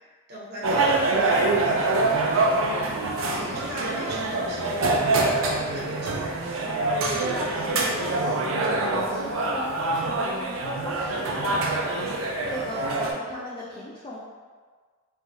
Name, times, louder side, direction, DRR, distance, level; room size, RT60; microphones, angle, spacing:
voice 1, 0.3-2.4 3.2-6.5, equal, 55° right, -5 dB, 0.7 m, -39 dB
sound 1, 0.6-13.1, right 2 dB, 85° right, 0.4 m, -25 dB
voice 2, 2.7-3.6 7.1-8.5 8.8-12.1 12.4-14.2, left 1 dB, 25° left, -6 dB, 0.3 m, -37 dB
3.1 x 2.3 x 2.6 m, 1.5 s
head